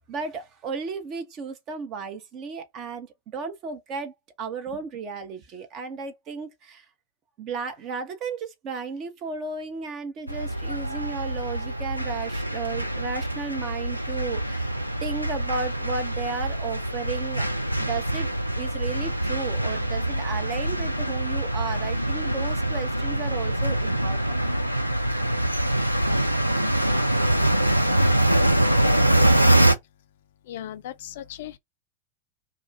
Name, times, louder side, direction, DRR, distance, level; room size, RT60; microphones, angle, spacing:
voice 1, 0.1-6.8 7.4-14.7 15.0-17.5 17.7-18.3 18.6-24.4, right 5 dB, 35° right, 0.7 m, -34 dB
sound 1, 10.3-29.7, right 1 dB, 90° right, 0.3 m, -24 dB
voice 2, 30.5-31.6, left 11 dB, 55° left, 0.3 m, -37 dB
2.3 x 2.3 x 3.0 m
figure-of-eight pair, 90°, 0 cm